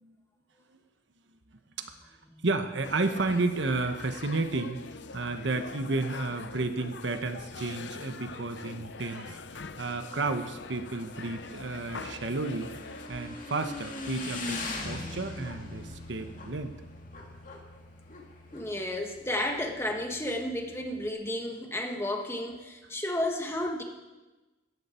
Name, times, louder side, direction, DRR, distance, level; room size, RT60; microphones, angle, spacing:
voice 1, 2.4-4.8 5.1-12.7 13.1-16.7, right 3 dB, 75° right, 8 dB, 1.1 m, -32 dB
sound 1, 2.8-13.1, left 4 dB, 70° left, 0.8 m, -43 dB
Motorcycle / Engine, 10.5-19.7, left 2 dB, 45° left, 2.2 m, -41 dB
Bass guitar, 14.8-21.1, left 1 dB, 85° left, 1.2 m, -48 dB
voice 2, 18.5-23.8, left 1 dB, 15° left, 2 dB, 1.4 m, -32 dB
16.5 x 14.0 x 4.4 m, 1.2 s
head